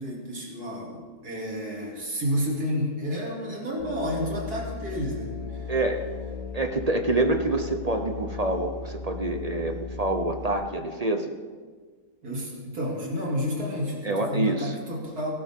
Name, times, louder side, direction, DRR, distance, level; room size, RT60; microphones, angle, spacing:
voice 1, 0.0-5.6 12.2-15.3, equal, 75° right, -2 dB, 3.4 m, -30 dB
Musical instrument, 3.8-10.5, left 5 dB, 75° left, 2.1 m, -37 dB
voice 2, 5.7-6.0 6.5-11.3 14.0-14.8, right 2 dB, 35° right, 5 dB, 0.7 m, -26 dB
17.5 x 14.0 x 3.7 m, 1.5 s
omnidirectional pair, 1.6 m